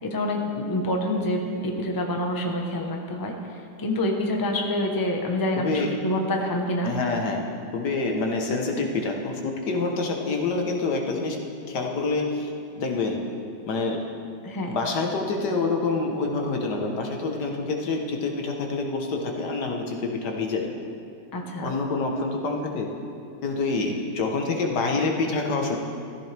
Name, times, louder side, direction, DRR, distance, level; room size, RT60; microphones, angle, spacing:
voice 1, 0.0-6.9 14.4-14.7 21.3-21.7, left 1 dB, 15° left, 1 dB, 0.8 m, -27 dB
voice 2, 5.6-6.0 6.8-11.4 11.7-12.5 12.8-13.2 13.7-14.0 14.7-20.7 21.6-22.9 23.4-25.8, left 3 dB, 75° left, 2 dB, 1.8 m, -27 dB
14.5 x 14.0 x 3.4 m, 2.5 s
omnidirectional pair, 1.8 m